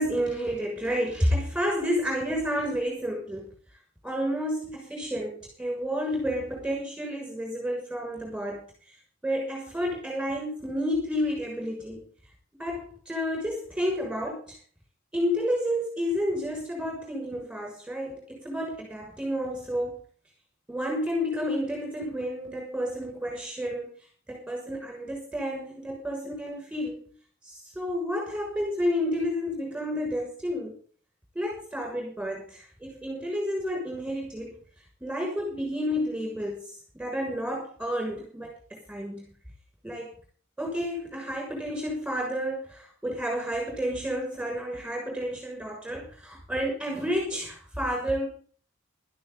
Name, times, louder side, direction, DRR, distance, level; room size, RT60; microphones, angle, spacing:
voice 1, 0.0-3.5 4.0-8.6 9.2-12.1 12.6-14.6 15.1-19.9 20.7-23.9 24.3-27.1 27.4-30.7 31.3-34.5 35.0-39.2 39.8-40.1 40.6-48.3, equal, 5° right, 0 dB, 6.6 m, -30 dB
16.0 x 13.5 x 4.1 m, 0.43 s
head